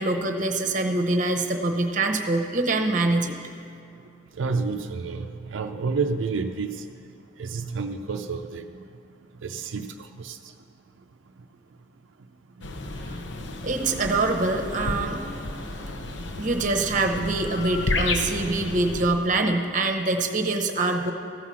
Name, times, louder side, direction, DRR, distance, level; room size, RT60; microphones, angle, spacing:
voice 1, 0.0-3.4 13.4-16.1 16.4-21.1, right 2 dB, 40° right, 4 dB, 0.8 m, -25 dB
voice 2, 4.4-6.8 7.4-8.7 9.4-10.4, right 4 dB, 90° right, 5 dB, 0.5 m, -29 dB
sound 1, 12.6-19.1, left 2 dB, 70° left, 0.7 m, -32 dB
14.5 x 5.6 x 6.2 m, 2.5 s
head